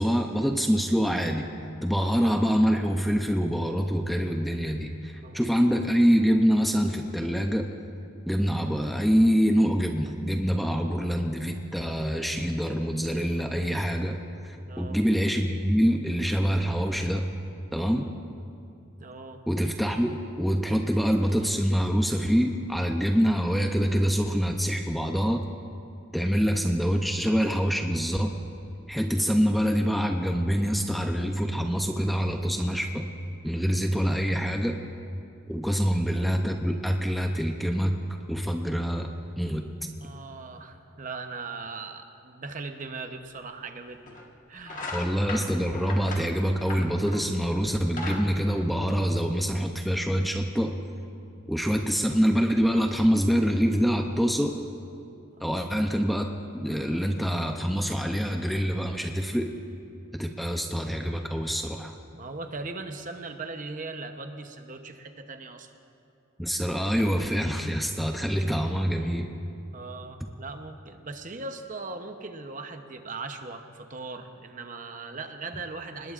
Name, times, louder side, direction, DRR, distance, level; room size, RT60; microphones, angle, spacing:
voice 1, 0.0-1.5 1.8-7.7 8.3-14.2 14.4-17.3 17.7-18.1 19.5-25.4 26.1-28.3 28.9-33.1 33.4-34.8 35.5-38.0 38.3-39.1 39.4-39.7 44.9-50.8 51.5-54.6 55.4-56.3 56.5-59.5 60.1-61.9 66.4-69.3, equal, ahead, 3 dB, 0.5 m, -25 dB
voice 2, 5.2-5.5 14.6-15.0 19.0-19.4 35.7-35.8 40.0-44.2 44.5-45.1 55.3-55.7 62.1-65.7 69.7-76.1, right 3 dB, 40° right, 6 dB, 0.8 m, -39 dB
sound 1, 43.3-43.4 44.1-44.3 44.6-47.3 47.7-49.4, left 2 dB, 40° left, 1.5 m, -37 dB
25.5 x 20.5 x 2.5 m, 2.7 s
head